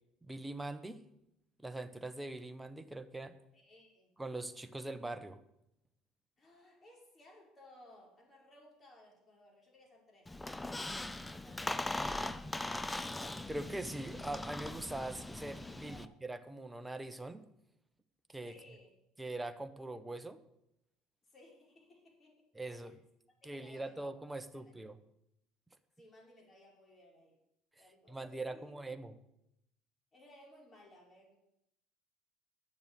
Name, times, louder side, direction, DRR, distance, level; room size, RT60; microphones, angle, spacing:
voice 1, 0.2-1.0 1.6-3.4 4.2-5.4 13.5-17.5 18.3-18.5 19.2-20.4 22.5-23.0 23.4-25.0 27.8-29.1, right 2 dB, 10° right, 9 dB, 1.1 m, -42 dB
voice 2, 3.5-4.1 6.4-10.3 10.7-11.9 12.2-13.1 15.4-15.5 15.8-16.1 18.4-18.9 21.2-23.0 23.4-24.0 24.4-24.8 26.0-27.4 27.7-28.7 30.1-31.4, left 1 dB, 30° left, -1 dB, 5.0 m, -60 dB
Squeak, 10.3-16.1, left 2 dB, 10° left, 0.6 m, -40 dB
9.6 x 7.0 x 8.3 m, 0.82 s
hypercardioid pair, 70°, 0 cm